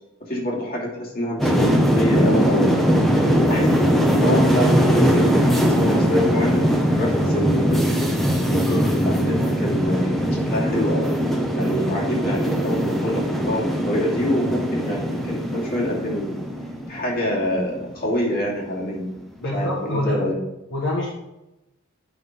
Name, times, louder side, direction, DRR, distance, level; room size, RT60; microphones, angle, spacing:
voice 1, 0.2-2.7 3.3-7.9 8.5-11.1 11.6-16.4 16.9-19.1 19.4-20.4, equal, 45° left, -4 dB, 2.9 m, -26 dB
sound 1, 1.4-17.8 18.2-18.5, equal, ahead, 0.9 m, -21 dB
voice 2, 19.4-20.3 20.7-21.1, left 1 dB, 65° left, -4 dB, 1.6 m, -26 dB
9.2 x 6.3 x 3.8 m, 0.93 s
head